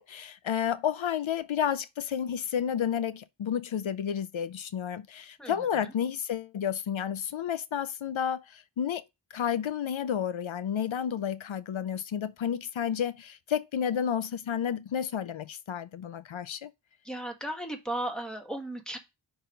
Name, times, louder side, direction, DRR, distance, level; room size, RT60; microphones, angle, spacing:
voice 1, 0.0-9.0 9.3-16.7, left 8 dB, 85° left, 0.5 m, -31 dB
voice 2, 5.4-5.9 17.0-19.0, right 1 dB, ahead, 1.6 m, -36 dB
5.6 x 4.8 x 3.8 m
wide cardioid pair, 50°, 46 cm